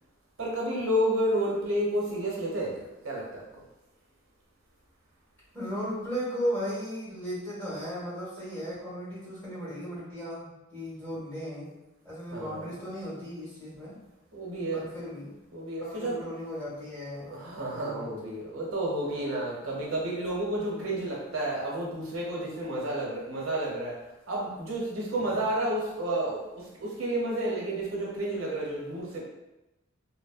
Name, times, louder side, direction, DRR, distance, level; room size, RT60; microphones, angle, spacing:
voice 1, 0.4-3.6 12.3-12.8 14.3-14.8 15.5-16.2 17.2-24.0 24.3-29.2, right 1 dB, 90° right, -3 dB, 0.7 m, -31 dB
voice 2, 5.5-11.7 12.0-14.0 14.7-15.3 15.8-17.3 17.7-18.1 20.5-20.9 25.2-25.5, equal, 10° left, -10 dB, 1.4 m, -36 dB
2.9 x 2.0 x 2.4 m, 0.96 s
head